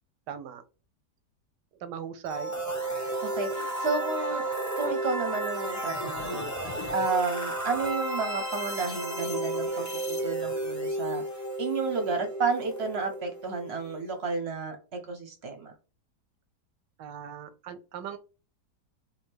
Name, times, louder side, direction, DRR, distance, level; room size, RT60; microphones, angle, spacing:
voice 1, 0.3-0.6 1.8-2.5 4.3-4.4 17.0-18.2, right 8 dB, 85° right, 12 dB, 1.3 m, -39 dB
sound 1, 2.3-14.1, right 1 dB, 25° left, 0.3 m, -33 dB
voice 2, 2.9-4.4 4.8-6.5 6.9-11.2 11.6-15.7, right 4 dB, 55° right, 5 dB, 0.8 m, -31 dB
3.5 x 2.8 x 4.4 m, 0.34 s
omnidirectional pair, 1.8 m